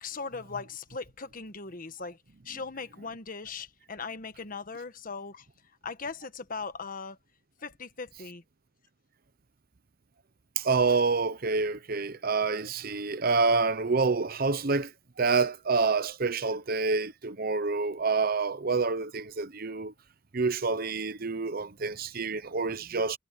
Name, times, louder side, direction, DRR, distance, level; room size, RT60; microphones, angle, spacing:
voice 1, 0.0-2.2 2.4-5.5 5.8-7.2 7.6-8.4, left 4 dB, 50° left, 1.3 m, -39 dB
voice 2, 10.6-14.9 15.2-19.9 20.3-23.2, right 4 dB, 50° right, 0.9 m, -27 dB
head